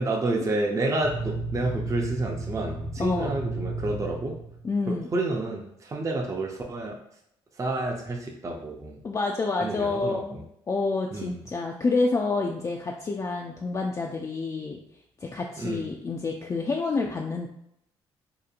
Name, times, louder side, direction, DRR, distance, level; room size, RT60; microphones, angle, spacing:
voice 1, 0.0-4.4 4.9-7.0 7.5-9.0 9.6-10.4 11.1-11.4 15.6-15.9, right 2 dB, 25° right, 1 dB, 0.5 m, -29 dB
sound 1, 1.0-4.7, right 2 dB, 70° right, 1.0 m, -33 dB
voice 2, 3.0-3.3 4.6-5.1 9.0-14.8 15.2-17.5, left 3 dB, 30° left, 0 dB, 0.3 m, -28 dB
2.9 x 2.1 x 2.4 m, 0.77 s
supercardioid pair, 60°, 12 cm